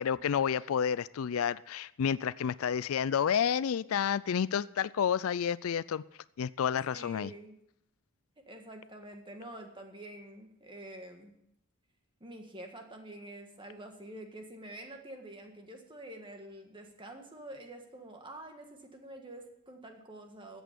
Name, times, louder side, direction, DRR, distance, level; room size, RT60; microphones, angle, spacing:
voice 1, 0.0-6.0 6.4-7.3, left 8 dB, 75° left, 19 dB, 0.4 m, -30 dB
voice 2, 6.6-7.6 8.5-11.4 12.2-20.6, right 1 dB, 20° right, 4 dB, 1.7 m, -47 dB
14.0 x 8.2 x 6.8 m, 0.79 s
head